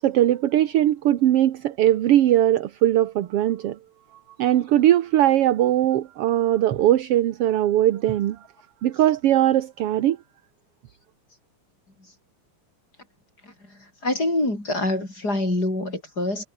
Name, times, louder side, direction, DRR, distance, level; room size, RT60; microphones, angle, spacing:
voice 1, 0.0-3.8 4.4-8.4 8.8-10.2, right 12 dB, 60° right, 1.7 m, -20 dB
voice 2, 14.0-16.5, left 2 dB, 30° left, 8.1 m, -25 dB
omnidirectional pair, 3.4 m